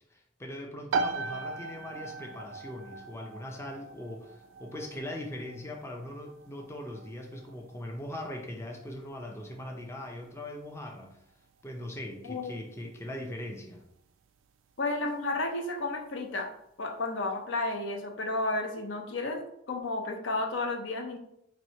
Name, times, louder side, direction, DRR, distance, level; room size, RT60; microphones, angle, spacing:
voice 1, 0.1-11.2 11.6-13.8, left 1 dB, 15° left, 1 dB, 0.5 m, -40 dB
sound 1, 0.9-15.4, right 4 dB, 80° right, 0.3 m, -40 dB
voice 2, 14.8-16.5 16.8-19.4 19.7-21.2, left 2 dB, 70° left, 3 dB, 0.6 m, -32 dB
3.0 x 2.7 x 4.2 m, 0.77 s
head